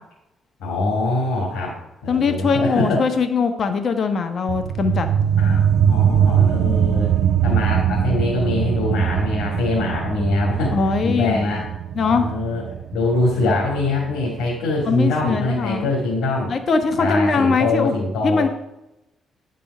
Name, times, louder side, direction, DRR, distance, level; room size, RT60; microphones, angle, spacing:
voice 1, 0.6-3.0 5.4-7.2 7.4-11.7 12.1-12.6 12.9-16.5 17.0-18.5, left 2 dB, 85° left, -4 dB, 2.3 m, -23 dB
voice 2, 2.1-5.1 10.7-11.4 11.9-12.3 14.9-15.9 16.5-17.9 18.2-18.5, left 5 dB, 50° left, 7 dB, 1.1 m, -21 dB
sound 1, 4.5-15.6, right 9 dB, 70° right, 0.6 m, -22 dB
10.5 x 5.4 x 5.5 m, 0.89 s
cardioid pair, 90°, 0 cm